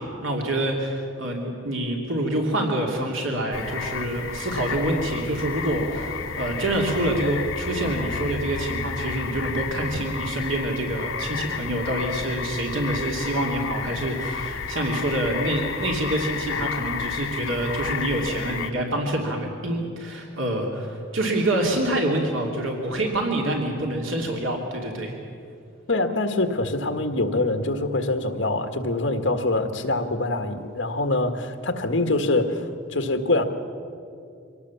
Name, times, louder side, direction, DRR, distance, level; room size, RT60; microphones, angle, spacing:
voice 1, 0.0-25.2, right 1 dB, 85° right, 0 dB, 2.8 m, -26 dB
sound 1, 3.5-18.7, left 6 dB, 90° left, 0.9 m, -32 dB
voice 2, 25.9-33.4, left 2 dB, 70° left, 6 dB, 1.7 m, -24 dB
24.5 x 18.5 x 7.2 m, 2.4 s
head